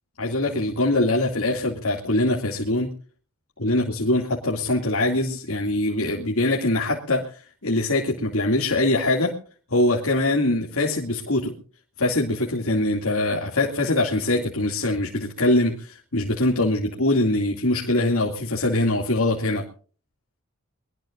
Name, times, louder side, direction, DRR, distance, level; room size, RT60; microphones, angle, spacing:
voice 1, 0.2-2.9 3.6-7.2 7.6-9.3 9.7-11.5 12.0-19.6, left 2 dB, 80° left, -1 dB, 2.5 m, -23 dB
23.5 x 19.0 x 2.6 m, 0.40 s
head